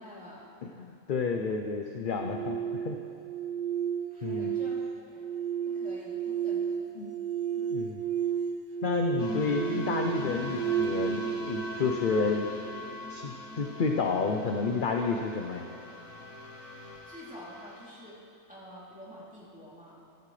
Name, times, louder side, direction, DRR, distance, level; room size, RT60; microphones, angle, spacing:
voice 1, 0.0-0.5 4.1-4.8 5.1-5.3 5.7-6.9 16.7-18.2 18.5-20.0, equal, 5° right, -8 dB, 2.9 m, -48 dB
voice 2, 0.6-2.6 2.8-3.0 4.2-4.5 7.0-7.1 7.6-8.0 8.8-12.5 13.1-15.6, left 4 dB, 50° left, 3 dB, 0.7 m, -30 dB
sound 1, 2.0-13.1, right 8 dB, 60° right, 0.5 m, -33 dB
sound 2, 9.2-17.9, left 2 dB, 75° left, 1.4 m, -41 dB
15.0 x 12.0 x 3.3 m, 2.6 s
omnidirectional pair, 1.4 m